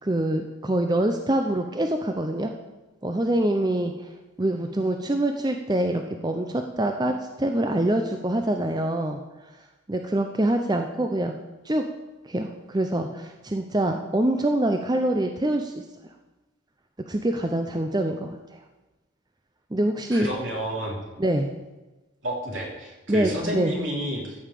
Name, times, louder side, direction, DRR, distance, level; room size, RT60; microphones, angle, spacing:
voice 1, 0.0-2.5 3.0-3.9 4.4-9.2 9.9-11.4 11.6-11.8 12.2-15.8 17.1-18.4 19.7-20.3 21.2-21.5 23.1-23.7, right 1 dB, 20° right, 5 dB, 0.6 m, -25 dB
voice 2, 20.1-21.0 22.2-24.3, equal, 65° right, -2 dB, 3.3 m, -30 dB
14.0 x 5.6 x 8.4 m, 1.1 s
head